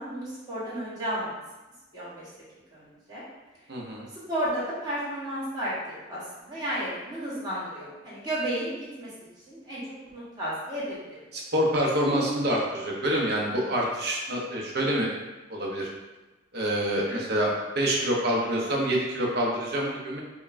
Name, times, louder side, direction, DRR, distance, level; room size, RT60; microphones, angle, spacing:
voice 1, 0.0-1.4 1.9-2.2 2.7-3.2 4.3-9.1 9.5-9.8 10.1-11.0 17.1-17.2, right 1 dB, 20° right, -9 dB, 1.2 m, -32 dB
voice 2, 3.7-4.1 11.3-15.1 15.5-15.9 16.5-20.2, equal, 55° right, -2 dB, 0.7 m, -26 dB
5.1 x 2.2 x 2.5 m, 1.1 s
head